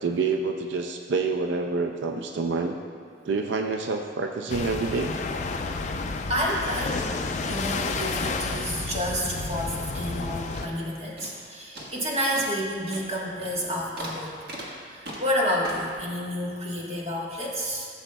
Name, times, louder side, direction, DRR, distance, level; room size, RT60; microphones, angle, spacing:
voice 1, 0.0-2.8 3.2-5.2, right 4 dB, 85° right, 4 dB, 0.5 m, -27 dB
sound 1, 4.5-10.7, left 3 dB, 40° left, 0.4 m, -31 dB
voice 2, 6.3-14.4 14.9-17.9, equal, 35° right, -3 dB, 1.3 m, -30 dB
sound 2, 8.7-10.2 10.5-10.9 11.2-11.5 11.7-16.0, equal, 60° right, 1.5 m, -41 dB
14.0 x 7.1 x 2.3 m, 2.1 s
head